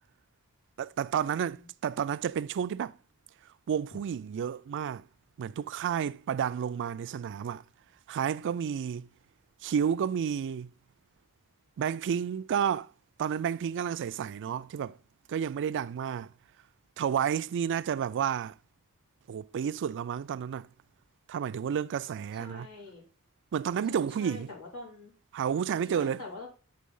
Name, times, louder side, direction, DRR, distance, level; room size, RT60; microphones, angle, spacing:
voice 1, 0.8-3.0 3.7-5.0 5.4-7.6 8.1-9.1 9.6-10.7 11.8-12.9 13.2-15.0 15.3-16.3 17.0-18.5 19.3-20.7 21.3-22.7 23.5-24.5 25.3-26.2, right 8 dB, 55° right, 0.3 m, -31 dB
voice 2, 22.4-23.1 23.9-25.1 25.9-26.5, left 3 dB, 65° left, 3.6 m, -45 dB
8.5 x 3.9 x 5.4 m
head